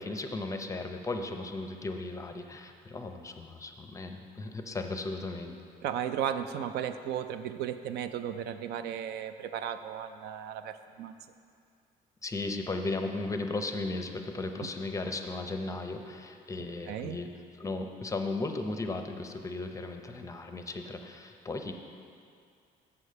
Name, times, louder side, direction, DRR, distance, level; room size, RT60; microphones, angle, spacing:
voice 1, 0.0-5.5 12.2-17.3 17.6-21.7, left 2 dB, 20° left, 5 dB, 0.6 m, -36 dB
voice 2, 5.8-11.1 14.6-14.7 16.6-17.2, right 9 dB, 75° right, 10 dB, 0.4 m, -35 dB
7.1 x 4.8 x 6.7 m, 2.4 s
cardioid pair, 110°, 17 cm